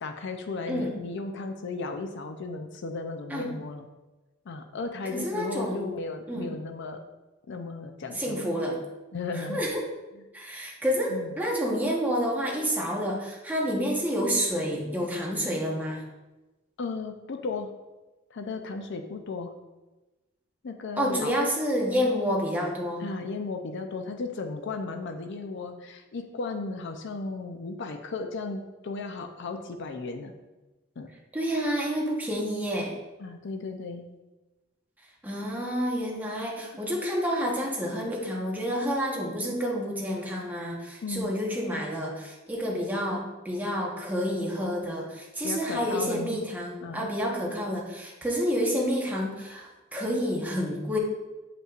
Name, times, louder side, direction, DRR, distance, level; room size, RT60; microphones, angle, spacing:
voice 1, 0.0-3.9 4.5-7.0 7.5-8.5 9.1-9.6 10.1-10.2 11.1-11.3 16.8-17.7 18.3-19.5 20.6-21.3 23.0-30.3 31.0-31.1 33.2-34.1 41.0-41.5 45.4-46.5 46.8-47.1, left 3 dB, 60° left, 5 dB, 0.5 m, -35 dB
voice 2, 5.1-5.9 6.3-6.5 8.1-8.8 9.3-9.8 10.3-16.0 21.0-23.0 31.3-32.9 35.2-51.0, equal, 10° right, -3 dB, 1.1 m, -29 dB
7.7 x 5.4 x 2.4 m, 1.1 s
head